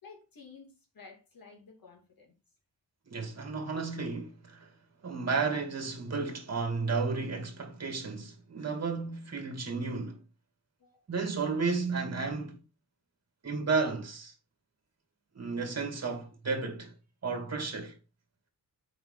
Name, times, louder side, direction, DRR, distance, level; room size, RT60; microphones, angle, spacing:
voice 1, 0.0-2.3 10.8-11.0, left 4 dB, 65° left, 2.9 m, -53 dB
voice 2, 3.1-4.7 5.0-10.2 11.1-12.6 13.4-14.3 15.3-16.9 17.2-17.9, right 4 dB, 40° right, 2.5 m, -33 dB
7.9 x 5.5 x 4.0 m
cardioid pair, 90°, 38 cm